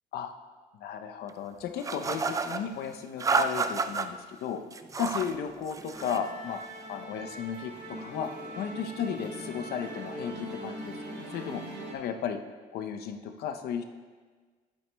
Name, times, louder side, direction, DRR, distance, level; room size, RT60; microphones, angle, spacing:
voice 1, 0.8-4.6 5.0-6.6 6.9-8.3 8.6-11.6 11.9-12.4 12.7-13.8, left 7 dB, 70° left, 6 dB, 0.7 m, -34 dB
sound 1, 1.8-2.6 3.2-4.1 4.7-5.3 5.7-6.3, right 4 dB, 20° right, 0.4 m, -30 dB
Musical instrument, 5.9-11.9, right 1 dB, 80° right, 1.6 m, -41 dB
10.5 x 8.5 x 2.2 m, 1.5 s
cardioid pair, 110°, 17 cm